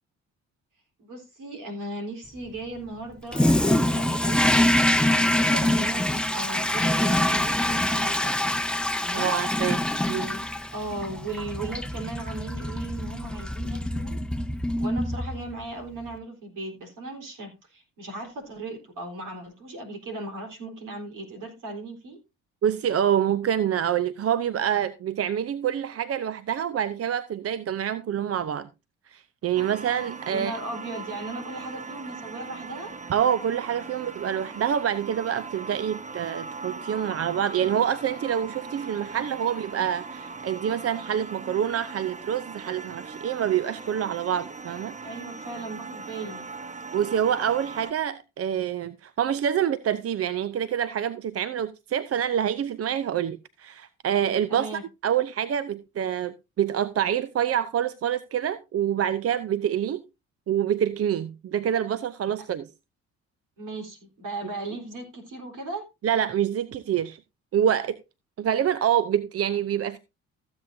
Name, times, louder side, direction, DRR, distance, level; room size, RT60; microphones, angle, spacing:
voice 1, 1.0-4.5 5.0-8.4 9.0-9.3 10.1-10.4 10.7-14.2 14.8-22.2 30.3-32.9 45.0-46.5 54.5-54.8 63.6-65.8, right 2 dB, 65° right, 3.9 m, -37 dB
Toilet flush, 3.3-15.6, left 1 dB, 5° left, 0.8 m, -25 dB
voice 2, 9.2-9.8 10.1-10.2 22.6-28.7 29.1-30.5 33.1-44.9 46.9-54.7 55.0-60.0 60.5-62.7 66.0-67.2 67.5-68.0 68.4-70.0, right 9 dB, 45° right, 0.6 m, -26 dB
sound 1, 29.6-47.9, right 4 dB, 20° right, 1.0 m, -39 dB
15.0 x 7.9 x 2.7 m
hypercardioid pair, 50°, 34 cm